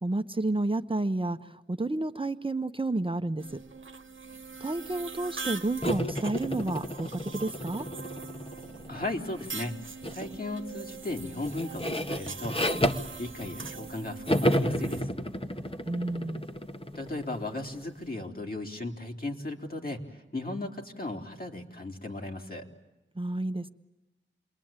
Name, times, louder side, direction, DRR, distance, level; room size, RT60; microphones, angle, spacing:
voice 1, 0.0-3.6 4.6-7.9 15.8-16.4 23.1-23.7, right 2 dB, 25° right, 8 dB, 1.1 m, -31 dB
sound 1, 3.4-15.0, right 4 dB, 80° right, 1.1 m, -42 dB
sound 2, 5.8-9.1 10.0-10.4 10.7-13.9 14.3-17.8, equal, 25° left, 1.5 m, -32 dB
voice 2, 8.9-9.7 10.1-12.6 13.2-15.1 17.0-20.0 20.3-22.7, left 2 dB, 45° left, 2 dB, 3.6 m, -36 dB
28.5 x 21.5 x 9.0 m, 1.0 s
wide cardioid pair, 45°, 20 cm